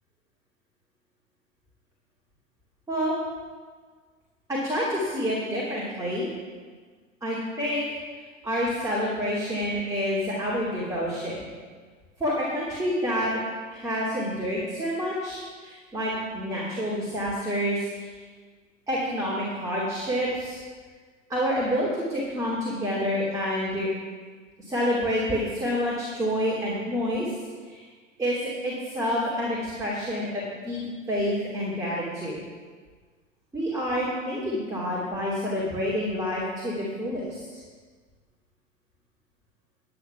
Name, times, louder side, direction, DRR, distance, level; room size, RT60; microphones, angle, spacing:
voice 1, 4.5-6.3 7.2-8.0 8.4-11.5 12.2-13.3 13.7-18.2 18.9-20.6 21.3-23.9 24.6-27.3 27.6-27.9 28.2-32.4 33.5-37.4, equal, 10° right, -7 dB, 2.8 m, -28 dB
10.0 x 9.9 x 5.9 m, 1.5 s
figure-of-eight pair, 95°, 40 cm